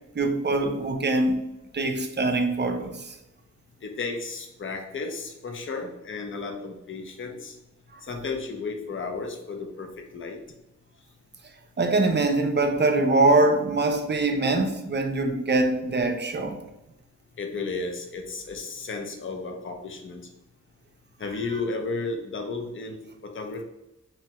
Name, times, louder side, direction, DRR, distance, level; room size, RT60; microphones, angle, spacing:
voice 1, 0.2-1.4 1.7-3.2 7.9-8.0 11.8-16.6, right 2 dB, 35° right, 0.4 m, -23 dB
voice 2, 3.8-7.6 8.1-10.4 17.4-20.3 21.2-23.6, left 3 dB, 40° left, 0.5 m, -33 dB
3.0 x 2.2 x 2.8 m
wide cardioid pair, 60°, 31 cm